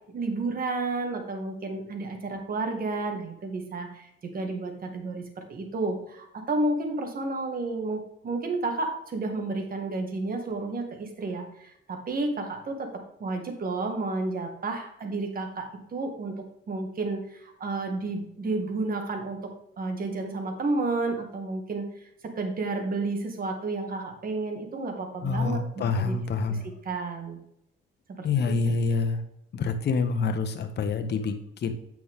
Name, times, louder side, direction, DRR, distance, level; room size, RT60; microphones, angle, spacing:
voice 1, 0.1-5.2 5.5-12.9 13.2-16.3 16.7-19.4 19.8-21.9 22.2-25.6 26.0-26.2 26.9-27.4 28.2-28.3, right 3 dB, 45° right, 4 dB, 1.9 m, -31 dB
voice 2, 25.2-26.7 28.2-29.2 29.5-31.7, left 4 dB, 60° left, 8 dB, 1.1 m, -27 dB
8.4 x 6.1 x 3.6 m, 0.77 s
cardioid pair, 90°, 20 cm